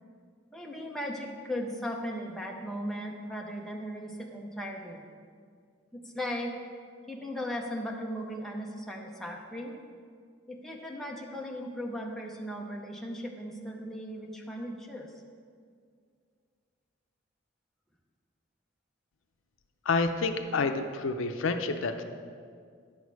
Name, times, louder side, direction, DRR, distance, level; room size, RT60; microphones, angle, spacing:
voice 1, 0.5-5.0 5.9-6.5 7.1-9.8 10.5-15.1, equal, ahead, -1 dB, 0.7 m, -37 dB
voice 2, 19.8-22.0, left 4 dB, 75° left, 7 dB, 0.5 m, -28 dB
10.0 x 6.3 x 4.7 m, 2.1 s
head